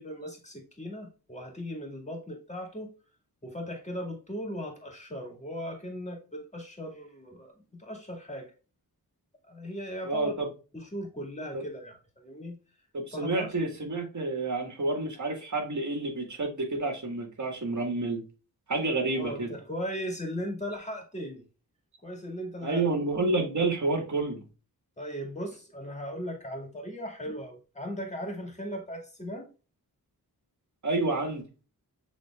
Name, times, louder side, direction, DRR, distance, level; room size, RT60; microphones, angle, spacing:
voice 1, 0.0-2.9 3.4-7.5 7.8-8.5 9.5-10.3 10.7-12.6 13.1-13.5 19.1-21.4 22.0-22.9 25.0-29.5, equal, 20° left, 2.0 m, -38 dB
voice 2, 10.0-10.5 11.5-11.6 12.9-18.2 18.7-19.5 22.6-24.4 30.8-31.4, right 2 dB, 50° right, 1.8 m, -29 dB
7.0 x 3.2 x 2.4 m
cardioid pair, 65°, 37 cm